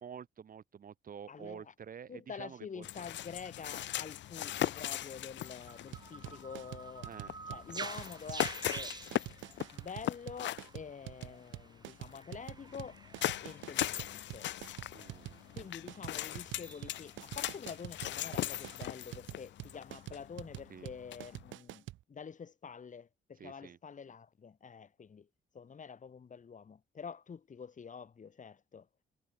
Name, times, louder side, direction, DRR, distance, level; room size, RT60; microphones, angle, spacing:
voice 1, 0.0-2.9 7.0-7.4 14.9-15.6 20.7-20.9 23.4-23.8, right 7 dB, 45° right, 1.1 m, -49 dB
voice 2, 1.3-1.7 2.1-7.1 7.5-9.0 9.7-13.0 13.4-14.5 15.5-25.3 25.5-28.9, left 6 dB, 40° left, 2.1 m, -47 dB
sound 1, 2.8-21.5, left 13 dB, 65° left, 0.7 m, -40 dB
sound 2, 5.4-19.2, right 4 dB, 20° right, 0.6 m, -50 dB
sound 3, 5.9-22.0, right 15 dB, 75° right, 0.5 m, -46 dB
cardioid pair, 90°, 20 cm